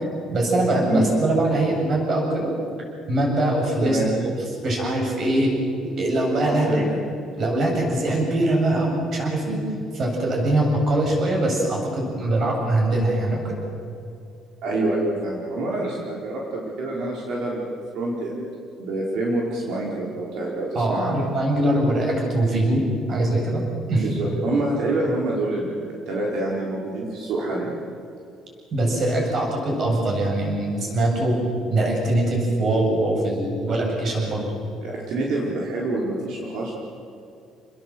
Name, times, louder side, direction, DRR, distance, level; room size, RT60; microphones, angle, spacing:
voice 1, 0.3-2.5 3.1-4.2 4.6-5.5 6.0-6.8 7.4-9.6 9.9-13.6 20.7-22.8 23.1-23.6 23.9-24.1 28.7-31.4 31.7-34.5, right 1 dB, 40° right, 0 dB, 7.8 m, -22 dB
voice 2, 3.8-4.1 6.4-6.8 14.6-18.5 18.8-21.3 24.0-27.7 34.1-34.3 34.8-36.7, right 2 dB, 65° right, -3 dB, 5.0 m, -26 dB
29.5 x 21.0 x 7.9 m, 2.6 s
cardioid pair, 155°, 0 cm